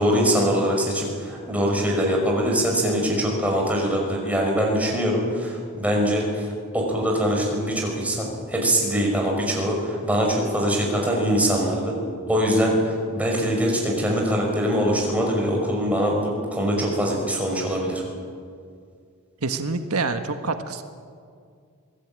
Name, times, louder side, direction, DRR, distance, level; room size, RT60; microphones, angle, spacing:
voice 1, 0.0-6.5 6.7-12.0 12.3-18.0, equal, 5° right, -1 dB, 5.8 m, -23 dB
voice 2, 19.4-20.8, right 3 dB, 85° right, 7 dB, 1.4 m, -26 dB
26.0 x 17.5 x 8.9 m, 2.2 s
head